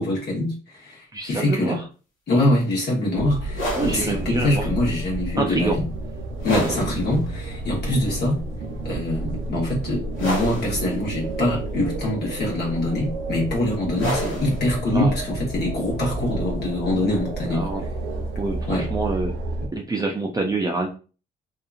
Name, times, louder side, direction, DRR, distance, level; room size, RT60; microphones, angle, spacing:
voice 1, 0.0-1.8 2.3-5.8 6.4-8.4 8.8-17.7 18.7-18.9, left 1 dB, 55° left, -3 dB, 1.1 m, -24 dB
voice 2, 1.1-1.8 3.8-4.7 5.4-5.8 6.6-6.7 7.9-8.0 14.9-15.2 17.5-17.8 18.4-19.3 19.7-20.9, right 3 dB, 20° right, 1 dB, 0.4 m, -26 dB
sound 1, 3.1-19.7, right 2 dB, 85° right, 0.6 m, -31 dB
sound 2, 3.4-18.8, equal, 85° left, 1.2 m, -33 dB
2.7 x 2.3 x 2.4 m, 0.36 s
cardioid pair, 90°, 20 cm